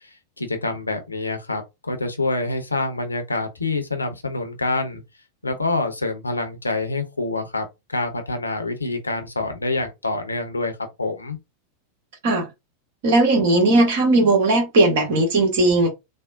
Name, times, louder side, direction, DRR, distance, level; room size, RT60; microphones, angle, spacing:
voice 1, 0.4-5.0 5.4-11.4, left 2 dB, 80° left, 0.6 m, -26 dB
voice 2, 13.0-15.9, right 2 dB, 55° right, 1.2 m, -17 dB
3.5 x 2.1 x 2.5 m
figure-of-eight pair, 90°, 0 cm